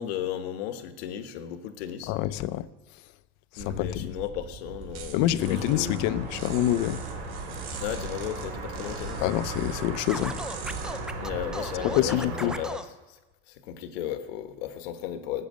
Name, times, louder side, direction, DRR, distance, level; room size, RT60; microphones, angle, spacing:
voice 1, 0.0-2.1 3.6-6.0 7.8-9.2 11.2-12.8 13.1-13.2 13.5-15.5, left 10 dB, 90° left, 1.2 m, -35 dB
voice 2, 2.1-2.7 3.5-4.1 5.1-7.0 9.2-10.4 12.0-12.5, left 14 dB, 65° left, 0.6 m, -26 dB
sound 1, 3.6-12.2, right 5 dB, 60° right, 2.7 m, -41 dB
sound 2, 5.4-12.6, right 2 dB, 80° right, 5.5 m, -37 dB
Scratching (performance technique), 10.1-12.9, right 1 dB, 5° right, 0.5 m, -36 dB
14.0 x 8.3 x 6.3 m
supercardioid pair, 125°, 30 cm